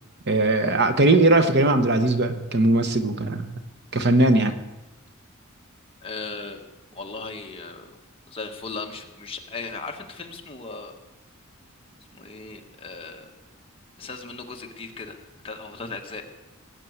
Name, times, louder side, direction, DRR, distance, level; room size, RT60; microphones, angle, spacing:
voice 1, 0.3-3.5 3.9-4.5, right 2 dB, 50° right, 8 dB, 1.1 m, -19 dB
voice 2, 6.0-6.6 6.9-7.9 8.3-10.9 12.1-13.3 14.0-15.2 15.4-16.2, left 3 dB, 25° left, 2 dB, 1.5 m, -37 dB
18.5 x 8.5 x 8.0 m, 1.0 s
head